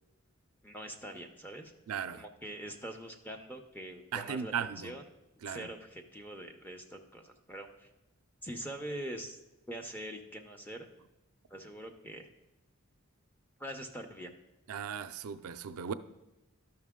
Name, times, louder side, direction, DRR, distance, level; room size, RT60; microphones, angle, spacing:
voice 1, 0.6-1.7 2.1-5.0 5.5-7.9 8.4-9.4 9.7-10.9 11.5-12.3 13.6-14.3, right 1 dB, 10° left, 0.6 m, -43 dB
voice 2, 1.9-2.2 4.1-4.9 5.4-5.7 14.7-15.9, right 7 dB, 85° right, 0.4 m, -37 dB
12.0 x 5.9 x 3.6 m
head